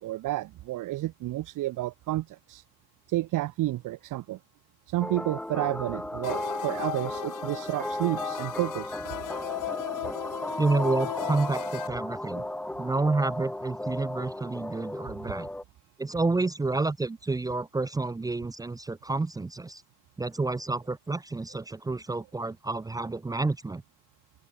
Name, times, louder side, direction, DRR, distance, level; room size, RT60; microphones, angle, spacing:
voice 1, 0.0-2.6 3.1-4.4 4.9-8.9 12.4-12.5, right 16 dB, 75° right, 4.9 m, -31 dB
sound 1, 5.0-15.6, left 1 dB, 5° left, 2.0 m, -35 dB
sound 2, 6.2-11.9, left 16 dB, 75° left, 3.0 m, -37 dB
voice 2, 10.6-12.4 12.8-15.5 16.0-19.8 20.2-23.8, right 3 dB, 10° right, 0.9 m, -29 dB
cardioid pair, 175°, 32 cm